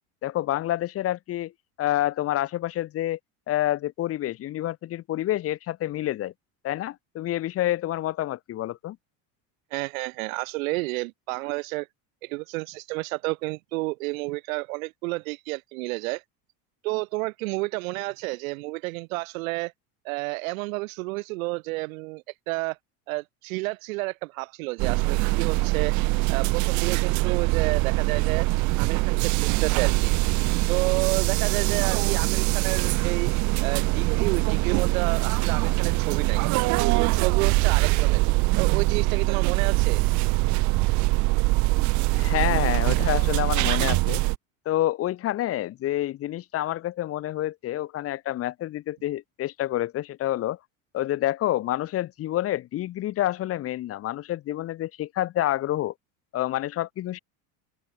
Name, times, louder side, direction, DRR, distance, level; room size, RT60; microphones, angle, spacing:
voice 1, 0.2-1.5 1.8-3.2 3.5-6.3 6.6-9.0 42.1-44.2 44.7-50.6 50.9-55.9 56.3-57.2, left 14 dB, 35° left, 5.8 m, -28 dB
voice 2, 9.7-11.9 12.2-16.2 16.8-19.7 20.0-22.8 23.1-25.9 26.3-28.5 28.8-30.1 30.7-33.3 33.6-36.4 37.0-38.2 38.6-40.0, right 24 dB, 85° right, 4.2 m, -30 dB
sound 1, 24.8-44.3, right 23 dB, 45° right, 1.5 m, -23 dB
open air
cardioid pair, 175°, 40 cm